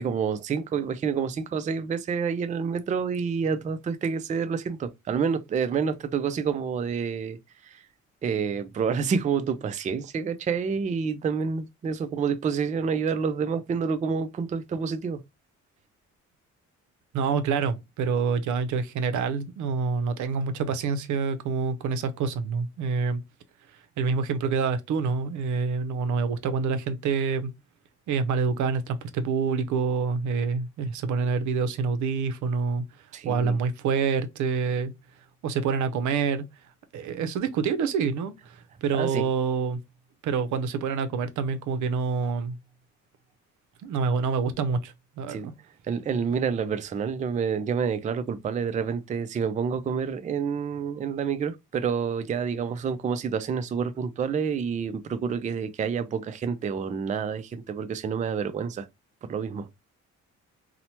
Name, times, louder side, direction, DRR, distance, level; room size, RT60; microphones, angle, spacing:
voice 1, 0.0-7.4 7.6-7.8 8.2-15.2 33.1-33.6 38.9-39.3 45.3-45.5 45.9-58.9 59.2-59.7, right 6 dB, 25° right, 0.3 m, -28 dB
voice 2, 17.1-23.2 24.0-27.5 28.1-32.8 33.2-34.9 35.4-36.4 36.9-39.8 40.2-42.6 43.8-45.5, right 5 dB, 75° right, 0.5 m, -27 dB
2.9 x 2.1 x 2.8 m
cardioid pair, 90°, 30 cm